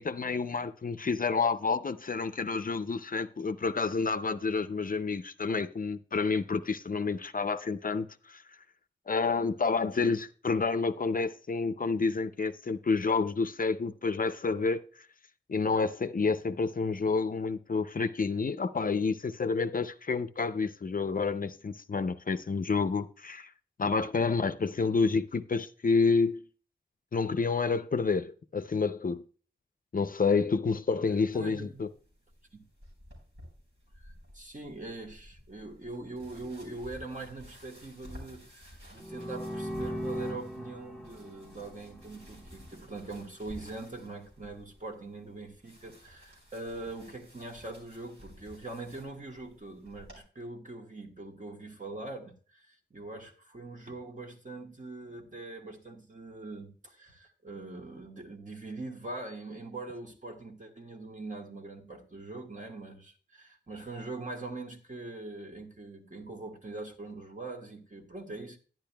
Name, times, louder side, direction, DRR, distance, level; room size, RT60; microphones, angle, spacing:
voice 1, 0.0-8.4 9.1-14.8 15.5-23.5 23.8-26.4 27.1-29.2 29.9-31.9, left 4 dB, 50° left, 0.4 m, -29 dB
voice 2, 31.3-31.8 32.5-32.6 34.0-68.6, right 2 dB, 45° right, 1.4 m, -42 dB
sound 1, 31.4-50.2, equal, 85° right, 3.9 m, -53 dB
sound 2, 39.0-42.7, equal, 5° left, 1.0 m, -39 dB
10.5 x 10.5 x 2.2 m
wide cardioid pair, 70°, 19 cm